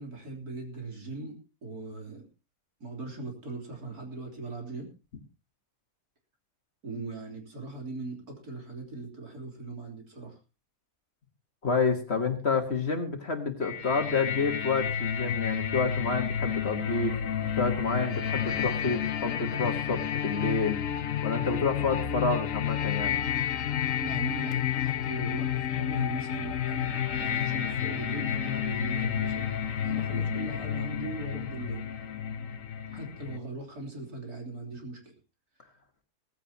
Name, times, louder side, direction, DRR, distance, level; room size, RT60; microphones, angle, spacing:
voice 1, 0.0-2.3 2.8-4.9 6.8-10.4 24.0-29.5 29.8-31.9 32.9-35.1, right 3 dB, 70° right, 2 dB, 4.0 m, -39 dB
voice 2, 11.6-17.2 17.6-20.8 21.2-23.3, left 4 dB, 40° left, 6 dB, 1.8 m, -29 dB
sound 1, 13.6-33.4, left 9 dB, 60° left, 1.3 m, -31 dB
18.0 x 15.0 x 2.9 m, 0.29 s
omnidirectional pair, 1.7 m